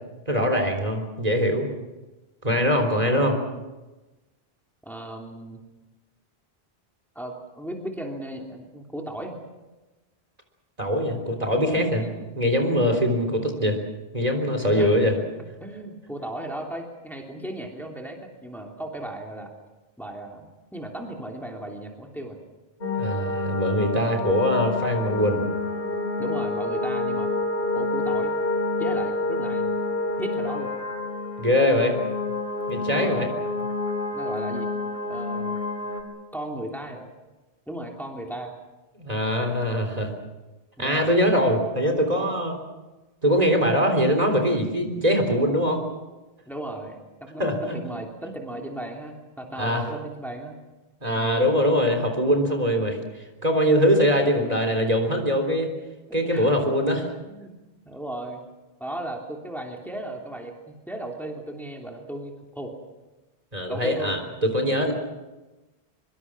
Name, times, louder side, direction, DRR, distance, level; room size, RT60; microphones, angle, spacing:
voice 1, 0.3-1.7 2.4-3.4 10.8-12.1 12.3-13.8 14.1-15.2 23.0-25.4 31.4-32.0 32.7-33.3 39.0-40.1 40.8-42.6 43.2-45.8 47.4-47.8 49.6-49.8 51.0-53.0 53.4-55.7 56.1-57.1 63.5-64.9, equal, 40° right, 3 dB, 3.7 m, -22 dB
voice 2, 4.8-5.6 7.1-9.4 12.0-12.3 14.7-14.9 15.6-19.5 20.0-22.4 26.2-27.3 27.7-28.3 28.8-29.7 30.2-30.7 32.8-33.4 34.1-34.7 35.1-35.6 36.3-37.1 37.7-38.5 40.8-41.1 46.5-50.6 56.1-56.6 57.3-57.6 57.8-58.4 58.8-62.7 63.7-64.2, right 1 dB, ahead, 1 dB, 3.0 m, -36 dB
sound 1, 22.8-36.0, left 2 dB, 70° left, 3.0 m, -28 dB
24.5 x 24.0 x 6.2 m, 1.1 s
omnidirectional pair, 1.0 m